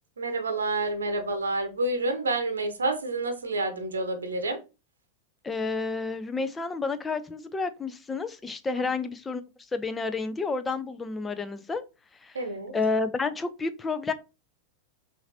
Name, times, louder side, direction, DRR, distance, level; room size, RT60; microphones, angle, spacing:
voice 1, 0.2-4.6 8.8-8.9 12.3-12.7, right 2 dB, 70° right, 0.8 m, -29 dB
voice 2, 5.4-9.4 9.7-11.8 12.2-12.4 12.7-14.1, left 4 dB, 15° left, 0.5 m, -30 dB
5.7 x 2.6 x 2.8 m
figure-of-eight pair, 90°, 0 cm